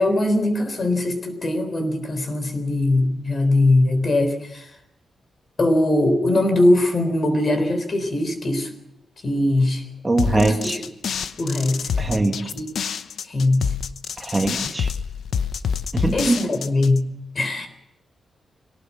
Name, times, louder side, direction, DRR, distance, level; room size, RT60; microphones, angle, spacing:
voice 1, 0.0-4.7 5.6-8.7 9.2-9.8 10.3-10.8 11.4-11.9 12.4-12.7 13.2-13.7 16.1-17.7, left 2 dB, 35° left, 8 dB, 3.8 m, -21 dB
voice 2, 10.0-10.8 12.0-12.4 14.2-14.9 15.9-16.4, right 2 dB, 20° right, 3 dB, 1.7 m, -22 dB
sound 1, 10.2-17.0, left 7 dB, 70° left, 0.9 m, -27 dB
22.5 x 18.0 x 7.4 m, 0.88 s
wide cardioid pair, 160°, 0 cm